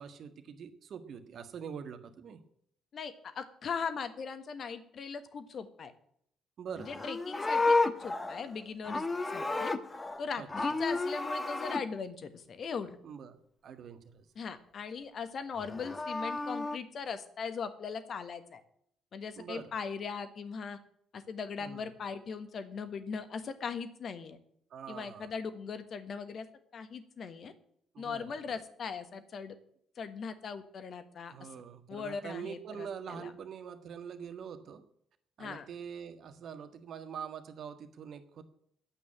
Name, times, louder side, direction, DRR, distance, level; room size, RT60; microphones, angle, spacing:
voice 1, 0.0-2.4 6.6-6.9 10.4-10.5 13.0-13.4 13.6-14.3 19.4-19.7 21.6-21.8 24.7-25.3 27.9-28.3 31.3-34.8 35.4-38.4, right 7 dB, 55° right, 9 dB, 1.6 m, -44 dB
voice 2, 2.9-5.9 6.8-9.1 9.3-9.7 10.2-13.0 14.3-18.6 19.1-20.8 21.1-24.4 24.9-26.5 26.7-27.5 28.0-29.5 29.9-31.5 31.9-33.3 35.4-35.7, left 5 dB, 50° left, 11 dB, 1.4 m, -39 dB
Livestock farm animals working animals, 6.8-10.2 10.5-11.8 15.6-16.8, left 3 dB, 25° left, 1.3 m, -31 dB
10.0 x 8.6 x 8.7 m, 0.69 s
figure-of-eight pair, 45°, 0 cm